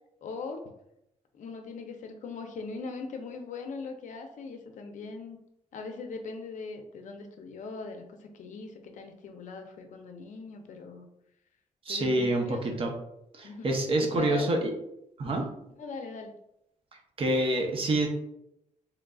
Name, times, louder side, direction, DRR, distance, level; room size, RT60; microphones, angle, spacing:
voice 1, 0.2-0.6 1.3-5.4 5.7-11.1 11.9-12.9 13.4-13.7 14.0-14.5 15.2-16.3, left 4 dB, 65° left, 5 dB, 0.5 m, -40 dB
voice 2, 11.9-12.9 13.3-14.7 15.2-15.4 17.2-18.1, right 1 dB, 40° right, 2 dB, 0.6 m, -27 dB
3.7 x 3.2 x 2.3 m, 0.81 s
wide cardioid pair, 150°, 14 cm